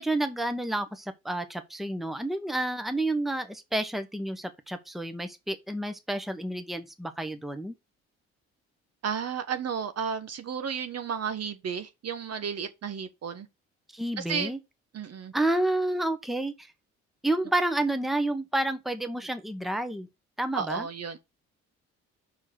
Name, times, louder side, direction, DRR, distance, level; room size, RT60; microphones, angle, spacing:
voice 1, 0.0-7.7 13.9-14.6 15.3-16.7 17.2-20.1 20.4-20.9, right 1 dB, ahead, 1.1 m, -30 dB
voice 2, 9.0-13.5 14.2-14.5 14.9-15.3 20.5-21.2, right 7 dB, 50° right, 1.3 m, -33 dB
5.8 x 4.5 x 6.3 m
supercardioid pair, 65°, 32 cm